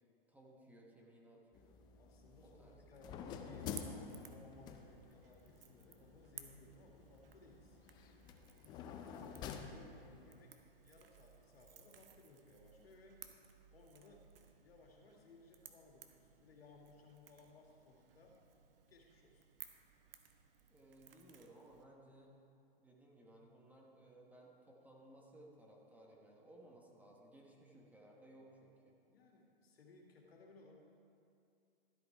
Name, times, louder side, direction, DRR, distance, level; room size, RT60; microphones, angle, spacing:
voice 1, 0.3-1.8 2.4-3.0 20.7-22.4 22.8-28.9, right 1 dB, 5° right, -2 dB, 1.1 m, -61 dB
sound 1, 1.5-10.4, left 6 dB, 15° left, 0.4 m, -50 dB
voice 2, 1.9-7.8 8.8-13.3 13.7-14.3 14.6-18.4 18.9-19.5 29.1-30.8, left 3 dB, 80° left, 0 dB, 2.2 m, -62 dB
Crackle / Crack, 3.5-21.8, right 8 dB, 65° right, 1.1 m, -60 dB
13.0 x 8.0 x 4.7 m, 2.5 s
hypercardioid pair, 135°, 30 cm